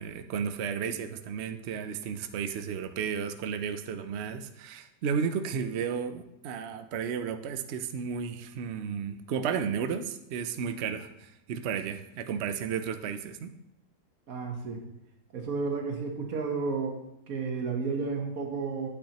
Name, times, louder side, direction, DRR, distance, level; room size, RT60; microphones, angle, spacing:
voice 1, 0.0-13.5, right 7 dB, 90° right, 8 dB, 0.5 m, -33 dB
voice 2, 14.3-14.8 15.3-17.0 17.3-18.9, right 4 dB, 55° right, 2 dB, 1.6 m, -32 dB
8.6 x 8.4 x 3.0 m, 0.83 s
omnidirectional pair, 1.9 m